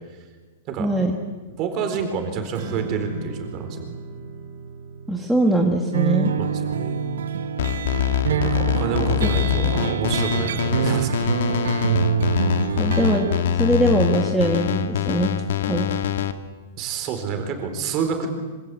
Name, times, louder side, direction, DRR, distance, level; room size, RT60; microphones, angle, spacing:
voice 1, 0.8-1.2 5.1-6.3 9.2-9.3 12.8-13.3 13.6-15.3 15.7-16.0, right 1 dB, ahead, -1 dB, 1.5 m, -21 dB
voice 2, 1.6-3.9 6.4-7.0 8.3-11.4 16.8-18.3, right 6 dB, 25° right, 5 dB, 4.2 m, -28 dB
Strum, 2.5-8.8, right 3 dB, 45° right, 5.5 m, -38 dB
sound 1, 5.9-13.4, right 7 dB, 85° right, 1.4 m, -25 dB
sound 2, 7.6-16.3, left 9 dB, 60° left, 2.0 m, -24 dB
27.0 x 26.5 x 8.4 m, 1.3 s
supercardioid pair, 175°, 0 cm